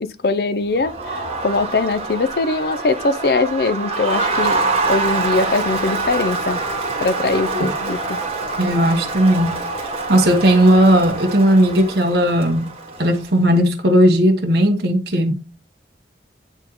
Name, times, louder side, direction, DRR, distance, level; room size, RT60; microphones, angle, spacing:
voice 1, 0.0-4.6 4.9-6.6 7.0-8.0, left 3 dB, 55° left, 0.5 m, -21 dB
Crowd, 0.7-13.3, right 3 dB, 35° right, 1.7 m, -25 dB
voice 2, 8.6-9.6 10.1-12.7 13.0-15.3, right 1 dB, 65° right, 1.1 m, -16 dB
8.9 x 3.7 x 3.0 m
head